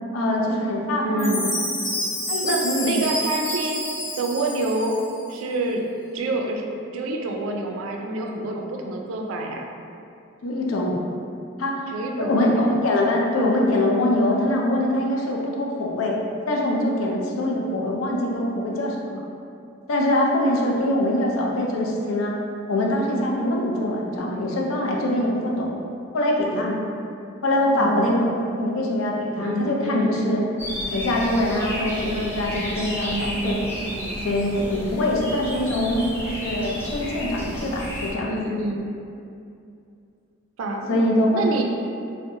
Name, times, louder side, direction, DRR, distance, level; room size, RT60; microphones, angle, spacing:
voice 1, 0.1-1.5 2.3-2.9 10.4-11.0 11.6-11.8 12.2-16.2 16.5-19.2 19.9-22.4 22.7-25.7 26.1-27.0 27.4-28.2 28.6-30.4 30.9-33.6 34.2-38.4 40.9-41.6, left 1 dB, 90° left, -1 dB, 0.4 m, -23 dB
voice 2, 1.0-1.5 2.4-3.9 4.2-5.0 5.3-5.8 6.1-6.6 6.9-9.6 11.9-12.8 27.8-28.3 29.4-30.4 33.0-34.3 38.3-38.9 40.6-41.0 41.3-41.6, right 2 dB, 80° right, 1 dB, 0.3 m, -27 dB
Chime, 1.2-5.2, left 1 dB, 40° left, 0.9 m, -29 dB
sound 1, 30.6-38.1, equal, 10° left, 0.4 m, -32 dB
2.7 x 2.1 x 2.5 m, 2.6 s
head